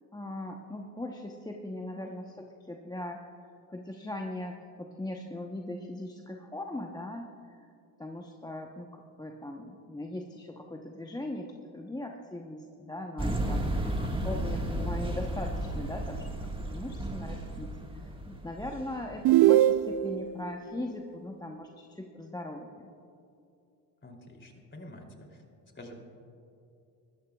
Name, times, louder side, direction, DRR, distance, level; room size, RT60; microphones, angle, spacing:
voice 1, 0.1-7.7 8.0-13.9 14.2-22.9, left 1 dB, 10° left, 2 dB, 0.8 m, -40 dB
sound 1, 13.2-19.2 19.8-19.9, right 1 dB, 10° right, 1.6 m, -33 dB
voice 2, 13.8-14.3 24.0-25.4 25.7-26.0, left 1 dB, 25° left, 2 dB, 2.9 m, -47 dB
sound 2, 19.2-20.3, right 13 dB, 55° right, 0.5 m, -21 dB
20.5 x 13.5 x 2.3 m, 2.7 s
supercardioid pair, 75°, 46 cm